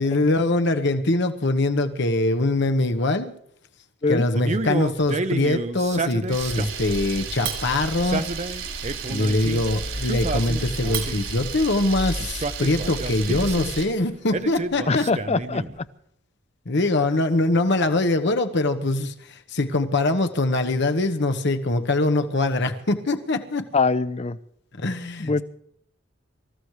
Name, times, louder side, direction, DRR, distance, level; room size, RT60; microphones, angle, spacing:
voice 1, 0.0-3.3 4.1-8.2 9.1-15.0 16.7-23.7 24.8-25.4, left 2 dB, 60° left, 7 dB, 1.1 m, -23 dB
Male speech man speaking, 4.4-6.9 7.9-9.6 10.0-11.3 12.2-13.7 14.3-15.8, right 3 dB, 35° right, 0.7 m, -30 dB
Camera, 6.3-13.9, right 4 dB, 80° right, 4.1 m, -31 dB
voice 2, 14.9-15.9 23.7-24.4 25.2-25.4, left 4 dB, 35° left, 15 dB, 0.6 m, -23 dB
26.5 x 14.5 x 3.2 m, 0.70 s
head